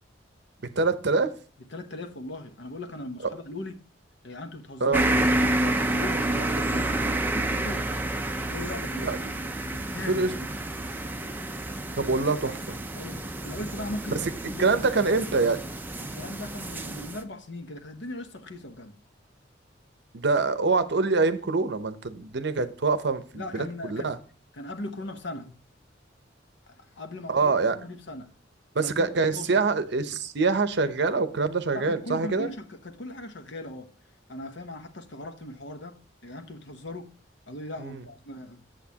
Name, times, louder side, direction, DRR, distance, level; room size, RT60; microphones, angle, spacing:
voice 1, 0.8-1.3 4.8-5.0 9.0-9.2 10.1-10.4 12.0-12.8 14.1-14.2 14.6-15.6 20.1-24.2 27.3-27.8 28.7-32.5 37.8-38.0, right 4 dB, 60° right, 0.7 m, -25 dB
voice 2, 1.7-3.8 4.2-5.0 5.4-7.0 7.2-7.9 8.5-9.1 9.6-10.2 12.9-14.8 16.0-19.0 23.3-24.2 24.5-25.6 26.7-28.3 28.8-29.6 31.7-33.9 34.3-36.0 36.2-37.1 37.5-38.6, left 1 dB, 65° left, 1.0 m, -39 dB
sound 1, 4.9-17.2, right 1 dB, 10° right, 0.6 m, -29 dB
8.4 x 7.7 x 2.8 m
head